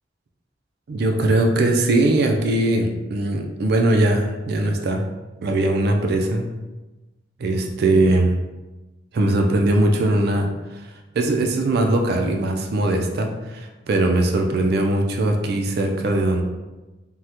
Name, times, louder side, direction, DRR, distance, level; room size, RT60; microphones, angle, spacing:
voice 1, 0.9-5.0 5.4-6.4 7.4-8.3 9.1-10.5 11.1-16.4, right 2 dB, 60° right, 3 dB, 0.4 m, -20 dB
3.5 x 2.1 x 2.9 m, 1.1 s
head